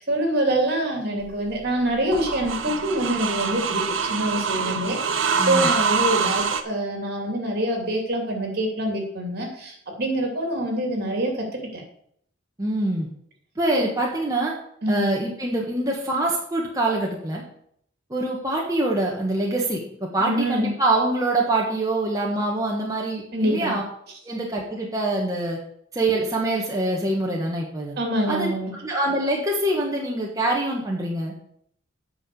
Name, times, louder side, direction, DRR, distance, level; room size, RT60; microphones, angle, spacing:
voice 1, 0.0-11.5 11.7-11.8 13.7-13.8 14.8-15.1 20.2-20.7 23.3-23.7 28.0-28.7, right 1 dB, 55° right, 2 dB, 2.9 m, -25 dB
sound 1, 1.2-6.6, right 5 dB, 80° right, 0.9 m, -25 dB
voice 2, 5.4-5.7 12.6-13.1 13.6-14.5 14.9-17.4 18.1-23.8 24.2-25.6 25.9-27.9 28.3-28.5 28.8-31.3, right 2 dB, 20° right, -2 dB, 1.5 m, -24 dB
8.8 x 5.8 x 6.9 m, 0.67 s
head